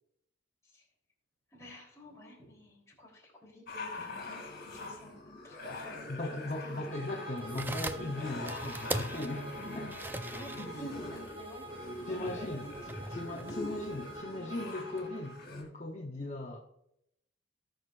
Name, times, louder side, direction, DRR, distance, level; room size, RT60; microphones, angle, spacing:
voice 1, 1.5-6.0 6.3-6.8 10.3-12.6, equal, 15° left, -3 dB, 3.4 m, -51 dB
sound 1, 3.7-15.6, left 2 dB, 50° left, 2.8 m, -44 dB
voice 2, 6.1-9.5 9.7-9.9 12.0-16.6, left 2 dB, 35° left, 0 dB, 0.9 m, -38 dB
Bowed string instrument, 6.9-15.4, right 1 dB, 25° right, 1.1 m, -47 dB
sound 2, 7.4-14.2, right 2 dB, 10° right, 0.4 m, -41 dB
18.5 x 6.5 x 2.5 m, 0.79 s
head